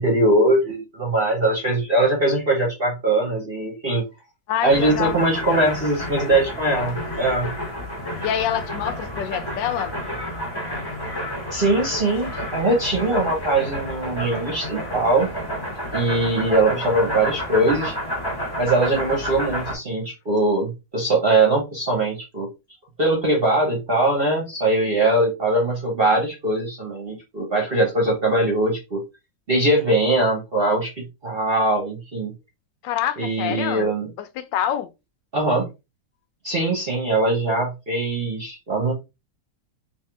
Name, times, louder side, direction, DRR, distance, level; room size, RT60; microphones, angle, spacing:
voice 1, 0.0-4.0 4.6-7.5 11.5-15.3 15.9-17.9 18.6-22.5 23.0-29.0 29.5-30.9 31.2-32.3 33.2-34.1 35.3-35.7 36.4-38.9, right 2 dB, 40° right, 1.0 m, -21 dB
voice 2, 4.5-5.2 6.7-6.9 8.2-9.9 32.8-33.9 34.2-34.9, left 10 dB, 80° left, 1.2 m, -26 dB
sound 1, 4.7-19.7, equal, 15° left, 0.8 m, -30 dB
3.6 x 2.8 x 3.3 m
omnidirectional pair, 2.0 m